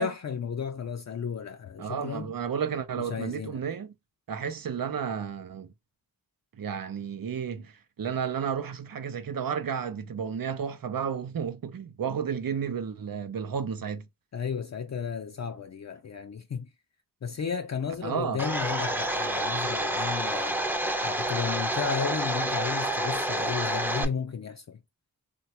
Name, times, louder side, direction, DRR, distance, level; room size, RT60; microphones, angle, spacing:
voice 1, 0.0-2.3 3.0-3.6 14.3-16.7 17.2-20.6 21.0-24.8, left 6 dB, 55° left, 0.4 m, -33 dB
voice 2, 1.8-3.9 4.3-5.7 6.6-7.7 8.0-14.0 18.0-18.4, right 7 dB, 80° right, 0.6 m, -32 dB
Domestic sounds home sounds, 18.4-24.1, right 1 dB, 5° right, 0.5 m, -28 dB
3.2 x 2.2 x 2.8 m
wide cardioid pair, 45°, 34 cm